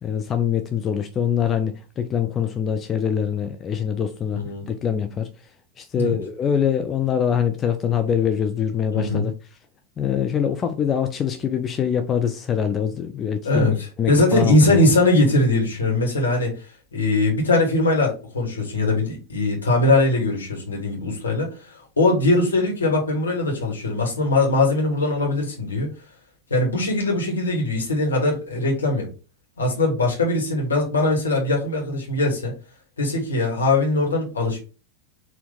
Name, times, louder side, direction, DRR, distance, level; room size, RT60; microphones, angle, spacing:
voice 1, 0.0-5.3 5.8-9.3 10.0-14.8, left 8 dB, 25° left, 0.5 m, -24 dB
voice 2, 4.3-4.7 5.9-6.2 8.9-9.3 13.4-16.5 16.9-25.9 26.5-29.1 29.6-32.5 33.0-34.6, left 2 dB, 75° left, 1.7 m, -21 dB
4.3 x 2.8 x 3.6 m
figure-of-eight pair, 90°, 0 cm